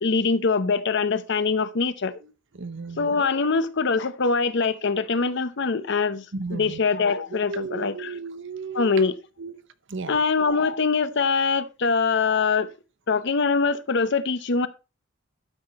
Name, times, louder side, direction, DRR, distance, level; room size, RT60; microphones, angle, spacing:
voice 1, 0.0-2.1 3.0-6.2 6.5-8.1 8.7-9.1 10.1-12.7 13.1-14.7, left 4 dB, 55° left, 0.7 m, -23 dB
voice 2, 2.2-3.1 5.7-5.9 6.3-6.8 7.3-9.0 9.4-10.2, right 4 dB, 60° right, 0.9 m, -35 dB
12.0 x 5.8 x 4.2 m
head